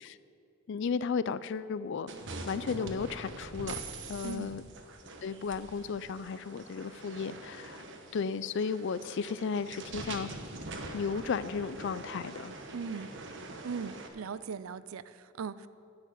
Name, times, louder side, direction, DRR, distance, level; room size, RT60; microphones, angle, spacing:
voice 1, 0.7-2.1 2.5-3.7 4.1-4.6 5.2-7.8 8.1-10.3 10.9-12.5, left 5 dB, 60° left, 16 dB, 0.4 m, -34 dB
sound 1, 2.1-14.1, right 3 dB, 60° right, 1.2 m, -44 dB
voice 2, 4.2-4.6 12.7-13.1 13.6-15.7, right 5 dB, 85° right, 16 dB, 0.4 m, -39 dB
10.5 x 7.5 x 8.0 m, 2.4 s
head